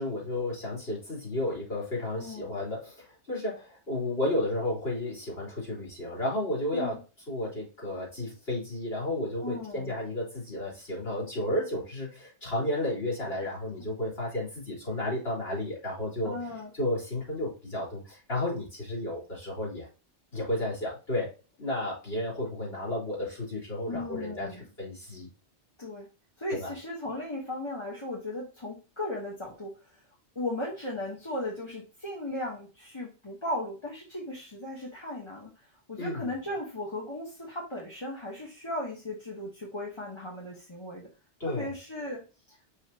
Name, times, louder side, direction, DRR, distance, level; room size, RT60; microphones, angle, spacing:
voice 1, 0.0-7.0 7.3-16.4 16.7-19.9 20.3-25.3 26.6-26.7 36.0-36.3 41.4-41.7, left 1 dB, 60° left, -4 dB, 4.1 m, -32 dB
voice 2, 2.2-2.5 6.7-7.0 9.4-10.0 13.4-13.5 16.2-16.7 23.8-24.7 25.8-26.1 26.4-30.0 30.3-41.1 41.4-42.6, left 1 dB, 25° left, -3 dB, 1.5 m, -37 dB
5.9 x 5.5 x 2.9 m, 0.32 s
omnidirectional pair, 1.2 m